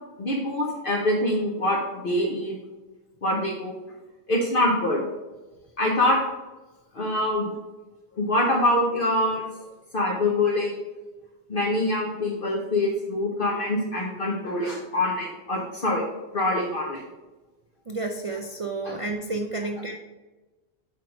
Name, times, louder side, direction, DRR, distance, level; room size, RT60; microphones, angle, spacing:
voice 1, 0.2-2.6 3.2-3.8 4.3-5.0 5.8-6.2 6.9-7.5 8.2-9.5 9.9-10.8 11.5-16.0 16.3-17.0 18.8-18.9, left 1 dB, 55° left, -2 dB, 1.2 m, -24 dB
voice 2, 17.9-20.0, right 3 dB, 45° right, 2 dB, 0.4 m, -31 dB
8.9 x 3.1 x 5.2 m, 1.2 s
omnidirectional pair, 1.1 m